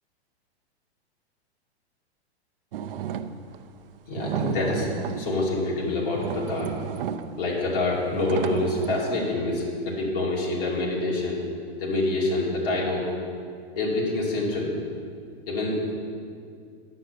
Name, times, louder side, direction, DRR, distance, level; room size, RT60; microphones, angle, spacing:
sound 1, 2.7-3.6 4.1-5.4 5.9-6.0 6.1-7.4 8.1-9.1, right 9 dB, 60° right, 0.6 m, -32 dB
voice 1, 4.1-4.9 5.2-6.7 7.4-11.4 11.8-13.1 13.8-14.7 15.5-15.9, left 2 dB, 55° left, -4 dB, 2.7 m, -26 dB
9.8 x 6.4 x 6.7 m, 2.3 s
hypercardioid pair, 155°, 33 cm